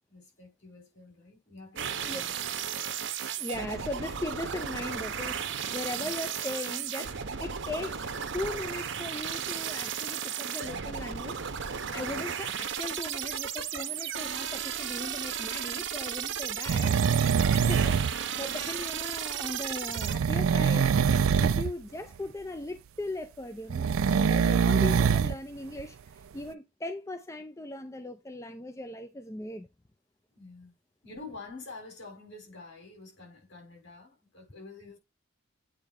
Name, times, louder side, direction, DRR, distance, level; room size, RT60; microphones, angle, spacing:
voice 1, 0.1-2.3 2.7-2.8 5.9-6.1 11.9-12.3 16.5-17.0 30.4-30.7 31.0-35.0, left 3 dB, 60° left, 5.4 m, -48 dB
sound 1, 1.8-20.2, right 8 dB, 60° right, 0.8 m, -34 dB
voice 2, 3.4-16.9 17.5-20.9 21.4-29.7, left 2 dB, 15° left, 0.5 m, -39 dB
sound 2, 16.7-18.2 20.0-21.7 23.7-25.3 25.8-25.9, right 6 dB, 75° right, 0.4 m, -24 dB
8.8 x 3.2 x 4.9 m
head